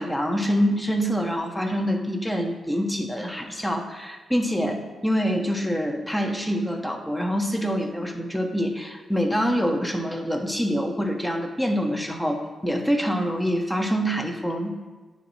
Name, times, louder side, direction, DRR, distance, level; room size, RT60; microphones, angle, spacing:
voice 1, 0.0-14.9, equal, 5° left, 2 dB, 1.3 m, -25 dB
9.1 x 3.1 x 5.7 m, 1.3 s
supercardioid pair, 50°, 0 cm